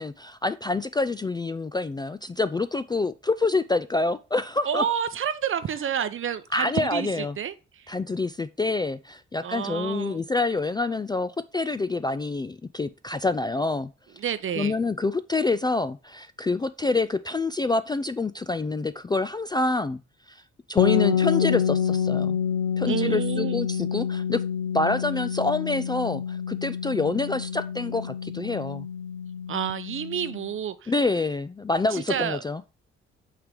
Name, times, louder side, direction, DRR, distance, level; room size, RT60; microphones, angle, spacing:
voice 1, 0.0-4.8 6.5-7.4 7.9-13.9 14.6-20.0 20.3-20.4 20.7-22.4 22.8-24.4 24.7-28.9 30.9-32.7, left 3 dB, 15° left, 0.3 m, -27 dB
voice 2, 4.6-7.9 9.4-10.2 14.2-14.7 22.9-23.6 29.5-30.9 31.9-32.4, right 8 dB, 40° right, 0.7 m, -29 dB
sound 1, 20.8-30.5, left 8 dB, 85° left, 0.5 m, -27 dB
5.7 x 3.3 x 5.2 m
hypercardioid pair, 40°, 31 cm